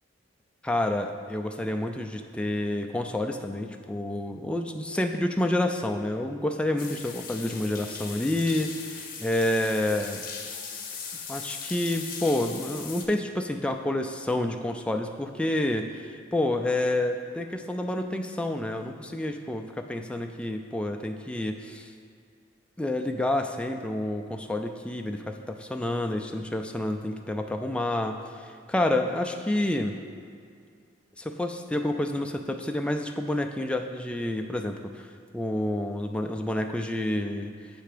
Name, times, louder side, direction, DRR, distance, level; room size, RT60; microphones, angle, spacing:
voice 1, 0.6-10.3 11.3-21.9 22.8-30.0 31.2-35.1 35.3-37.5, left 1 dB, 5° left, 4 dB, 0.3 m, -29 dB
sound 1, 6.8-13.1, left 6 dB, 50° left, 0.7 m, -39 dB
7.5 x 3.4 x 4.9 m, 2.3 s
head